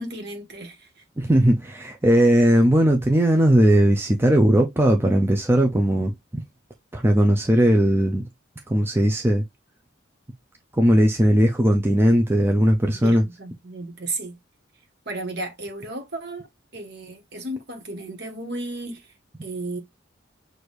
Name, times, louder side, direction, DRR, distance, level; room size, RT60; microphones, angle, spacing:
voice 1, 0.0-1.0 12.9-14.3 15.0-16.5 16.7-19.1 19.4-19.8, right 2 dB, 55° right, 1.5 m, -34 dB
voice 2, 1.2-6.4 6.9-8.3 8.7-9.4 10.7-13.3, equal, 10° right, 0.5 m, -18 dB
6.2 x 2.6 x 3.2 m
head